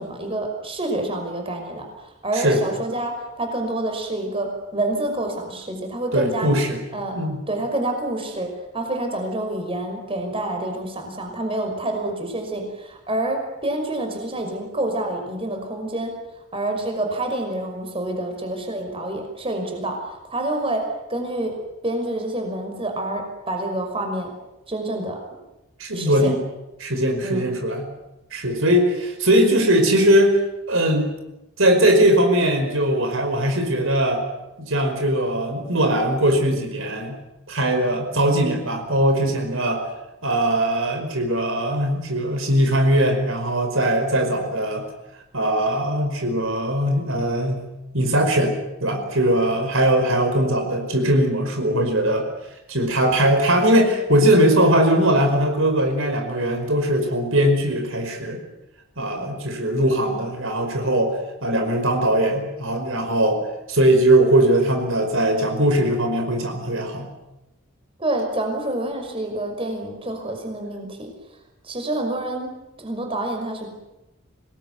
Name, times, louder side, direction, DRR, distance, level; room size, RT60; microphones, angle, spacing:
voice 1, 0.0-6.5 6.9-7.1 7.5-8.5 8.7-16.1 16.5-20.0 20.3-20.8 21.1-21.5 21.8-24.3 24.7-25.2 25.9-26.3 27.2-27.4 68.0-71.1 71.6-72.5 72.8-73.7, right 1 dB, 25° right, 3 dB, 5.7 m, -27 dB
voice 2, 6.1-6.8 7.1-7.4 25.8-26.4 26.8-27.9 28.3-30.4 30.7-31.1 31.6-34.2 34.6-37.2 37.5-39.8 40.2-44.8 45.3-52.3 52.7-58.4 59.0-63.4 63.7-67.1, right 1 dB, 65° right, 4 dB, 5.2 m, -20 dB
26.5 x 20.0 x 9.6 m, 0.96 s
head